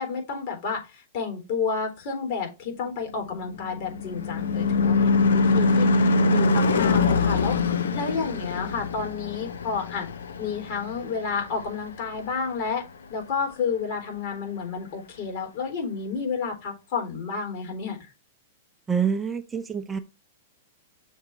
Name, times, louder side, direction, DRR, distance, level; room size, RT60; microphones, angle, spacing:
voice 1, 0.0-10.1 10.4-12.8 13.1-18.1, left 5 dB, 55° left, 3.7 m, -31 dB
Car passing by / Truck / Engine, 3.3-12.0, left 3 dB, 85° left, 0.8 m, -23 dB
voice 2, 18.9-20.0, right 7 dB, 15° right, 0.6 m, -26 dB
6.5 x 3.6 x 5.9 m
hypercardioid pair, 125°, 0 cm